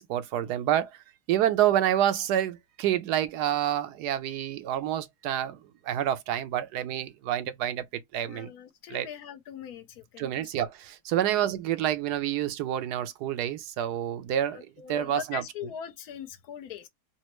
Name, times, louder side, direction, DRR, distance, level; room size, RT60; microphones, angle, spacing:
voice 1, 0.0-8.5 8.9-9.1 10.2-15.4, right 11 dB, 90° right, 1.2 m, -28 dB
voice 2, 8.2-10.5 11.2-11.3 14.5-16.9, left 9 dB, 75° left, 1.2 m, -41 dB
4.1 x 2.0 x 2.9 m
omnidirectional pair, 1.6 m